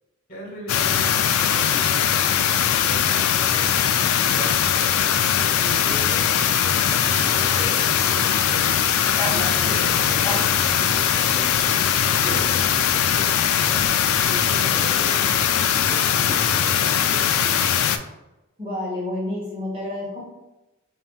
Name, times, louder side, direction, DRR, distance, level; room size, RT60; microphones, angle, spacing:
voice 1, 0.3-8.6 9.3-13.8 14.3-17.5, right 1 dB, 40° left, -3 dB, 1.4 m, -37 dB
sound 1, 0.7-18.0, left 9 dB, 80° left, 0.3 m, -20 dB
sound 2, 8.9-15.9, left 1 dB, 15° left, 0.5 m, -38 dB
voice 2, 9.3-9.8 18.6-20.2, left 1 dB, 25° right, -6 dB, 1.4 m, -30 dB
5.5 x 2.8 x 2.3 m, 0.99 s
head